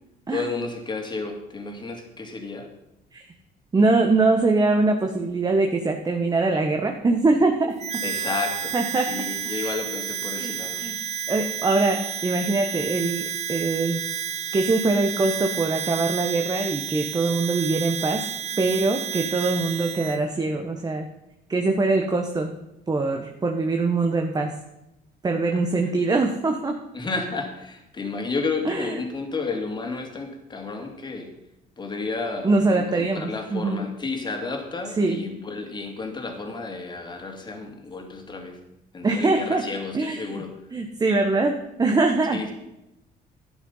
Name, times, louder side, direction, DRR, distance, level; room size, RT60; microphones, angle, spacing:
voice 1, 0.3-2.7 8.0-10.8 25.5-25.6 26.9-31.3 31.8-38.6 38.9-40.5 42.3-42.5, left 3 dB, 25° left, 3 dB, 2.5 m, -32 dB
voice 2, 3.7-8.0 8.7-9.1 9.4-9.7 10.4-10.9 11.3-14.0 14.5-18.3 18.6-21.0 21.5-22.5 22.9-24.5 25.2-26.8 28.6-28.9 32.4-33.8 35.0-35.2 39.0-39.6 39.9-40.4 40.7-42.4, right 3 dB, 25° right, 3 dB, 1.2 m, -23 dB
Harmonica, 7.8-20.2, right 8 dB, 40° right, 0.6 m, -31 dB
12.0 x 9.6 x 5.6 m, 0.89 s
cardioid pair, 110°, 17 cm